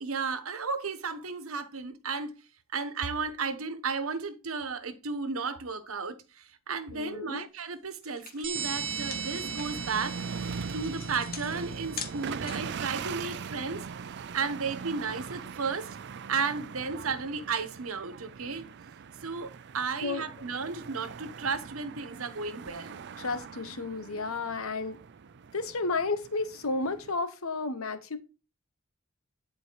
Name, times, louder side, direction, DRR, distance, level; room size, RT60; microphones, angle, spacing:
voice 1, 0.0-2.3 2.7-10.2 10.7-13.9 14.3-16.0 16.3-18.7 19.2-23.0, right 4 dB, 85° right, 1.1 m, -34 dB
voice 2, 6.9-7.5 20.0-20.2 23.2-25.0 25.5-28.2, left 3 dB, 90° left, 1.2 m, -32 dB
sound 1, 7.6-7.7 8.0-12.8, left 6 dB, 45° left, 1.6 m, -43 dB
sound 2, 8.4-12.7, right 7 dB, 25° right, 1.4 m, -39 dB
sound 3, 8.5-27.2, right 5 dB, 55° right, 0.5 m, -41 dB
11.0 x 4.5 x 4.6 m
head